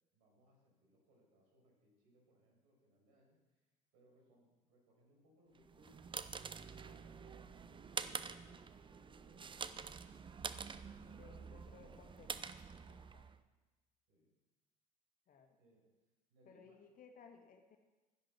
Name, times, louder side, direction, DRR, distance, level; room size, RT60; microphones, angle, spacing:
voice 1, 0.1-3.4 3.9-6.1 6.7-9.9 10.2-12.1 13.2-13.3 14.1-14.3 15.5-15.9 16.3-16.7, equal, 70° right, -1 dB, 6.0 m, -70 dB
sound 1, 5.6-13.4, right 6 dB, 25° right, 0.7 m, -47 dB
voice 2, 11.1-12.6 12.9-13.3 15.3-15.6 16.5-17.8, left 5 dB, 45° left, 5 dB, 1.9 m, -61 dB
13.5 x 10.5 x 6.1 m, 1.2 s
hypercardioid pair, 70°, 20 cm